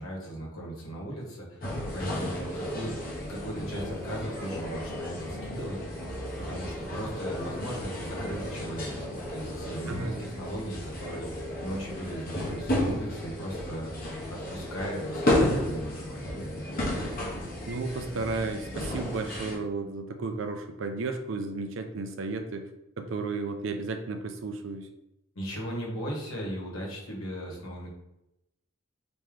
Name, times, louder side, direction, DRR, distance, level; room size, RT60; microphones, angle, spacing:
voice 1, 0.0-2.9 3.3-5.8 6.4-16.3 25.3-27.9, equal, 80° left, -3 dB, 1.3 m, -37 dB
sound 1, 1.6-19.5, left 1 dB, 45° left, 1.0 m, -33 dB
voice 2, 9.9-10.2 17.7-22.7 23.0-24.9, right 3 dB, 65° right, 7 dB, 0.5 m, -33 dB
3.2 x 2.9 x 3.6 m, 0.87 s
head